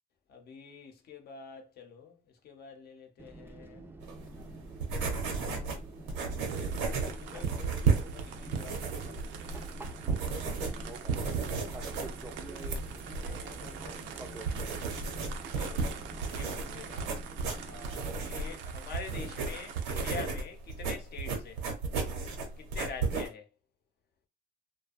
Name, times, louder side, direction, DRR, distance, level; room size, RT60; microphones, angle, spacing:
voice 1, 0.3-3.9 5.1-5.9 6.8-9.3 12.8-14.9 15.5-15.9 16.3-17.2 17.6-21.6 22.6-23.5, left 6 dB, 55° left, 0.8 m, -47 dB
Fixed-wing aircraft airplane, 3.2-18.6, right 2 dB, 10° right, 0.4 m, -47 dB
sound 1, 4.0-23.3, right 4 dB, 85° right, 0.8 m, -34 dB
sound 2, 6.4-20.2, right 7 dB, 70° right, 0.5 m, -46 dB
2.5 x 2.2 x 2.4 m
supercardioid pair, 90°, 19 cm